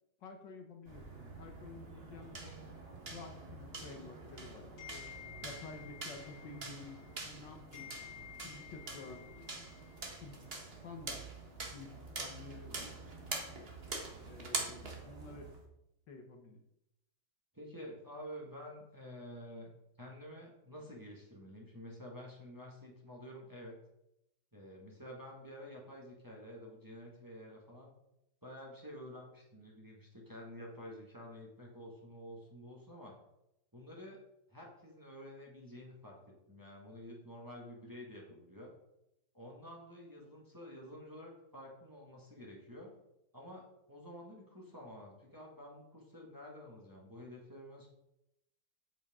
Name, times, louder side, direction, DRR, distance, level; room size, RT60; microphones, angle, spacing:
voice 1, 0.2-2.6 3.1-5.1 5.4-7.9 8.4-9.3 10.2-10.4 10.8-11.2 11.7-12.9 14.2-15.5 16.1-16.6 17.8-17.9, left 3 dB, 70° left, 4 dB, 1.8 m, -51 dB
sound 1, 0.9-15.6, right 3 dB, 35° right, 1.5 m, -45 dB
sound 2, 4.8-7.4 7.7-10.3, left 10 dB, 85° left, 4.9 m, -53 dB
voice 2, 17.5-19.7 20.0-23.8 24.5-27.9 28.4-33.2 33.7-34.2 34.5-36.2 36.5-38.7 39.3-42.9 43.3-47.9, equal, 10° right, -2 dB, 1.7 m, -50 dB
8.9 x 8.2 x 3.7 m, 0.84 s
omnidirectional pair, 2.1 m